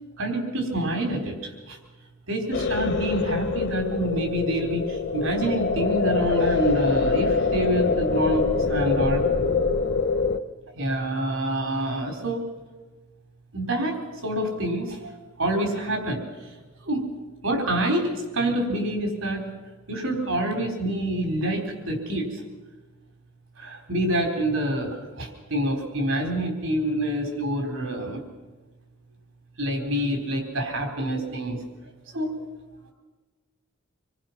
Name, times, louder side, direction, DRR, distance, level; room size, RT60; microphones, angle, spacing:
voice 1, 0.2-1.8 2.3-9.2 10.8-12.4 13.5-15.1 15.4-16.5 16.8-17.1 17.4-19.5 19.9-22.4 23.6-28.2 29.6-31.6 32.1-32.4, right 1 dB, 80° right, 3 dB, 4.0 m, -27 dB
sound 1, 2.5-10.4, left 4 dB, 55° left, 1.0 m, -24 dB
27.0 x 22.0 x 5.9 m, 1.3 s
head